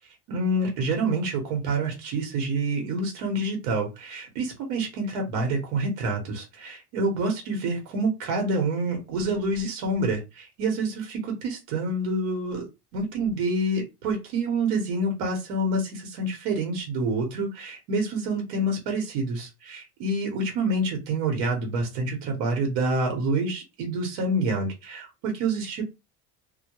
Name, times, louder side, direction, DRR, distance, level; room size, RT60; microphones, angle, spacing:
voice 1, 0.3-12.7 12.9-25.8, right 2 dB, 85° right, 1 dB, 1.1 m, -27 dB
2.2 x 2.2 x 2.9 m, 0.24 s
cardioid pair, 130°, 44 cm